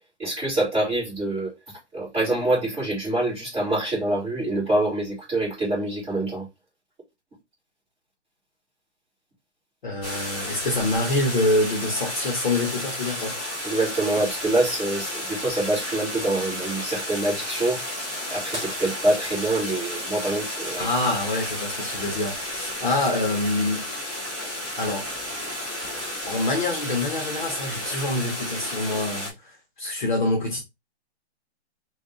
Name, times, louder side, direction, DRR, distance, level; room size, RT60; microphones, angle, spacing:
voice 1, 0.2-1.5 1.9-6.5 13.6-17.8 18.3-20.9, right 2 dB, 10° right, 1.9 m, -25 dB
voice 2, 9.8-13.4 20.8-23.9 24.8-25.1 26.3-30.6, left 2 dB, 45° left, 0.9 m, -26 dB
sound 1, 10.0-29.3, left 1 dB, 10° left, 0.6 m, -32 dB
sound 2, 18.5-21.0 22.9-23.0 25.2-25.3 27.0-27.3 28.1-28.2, right 1 dB, 25° right, 1.3 m, -40 dB
3.5 x 2.4 x 3.7 m
hypercardioid pair, 180°, 35 cm